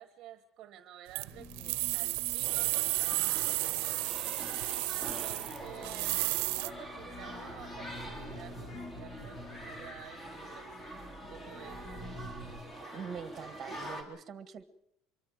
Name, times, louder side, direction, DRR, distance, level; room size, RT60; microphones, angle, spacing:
voice 1, 0.0-4.2 4.9-10.9 11.3-12.0, right 11 dB, 45° right, 10 dB, 1.2 m, -51 dB
sound 1, 1.2-6.7, right 24 dB, 75° right, 0.8 m, -32 dB
sound 2, 1.3-12.6, left 1 dB, 35° left, 3.1 m, -49 dB
sound 3, 2.4-14.0, right 1 dB, 15° left, 3.7 m, -45 dB
voice 2, 12.9-14.7, right 6 dB, 25° right, 11 dB, 1.8 m, -43 dB
25.0 x 23.5 x 5.0 m, 0.75 s
cardioid pair, 155°, 0 cm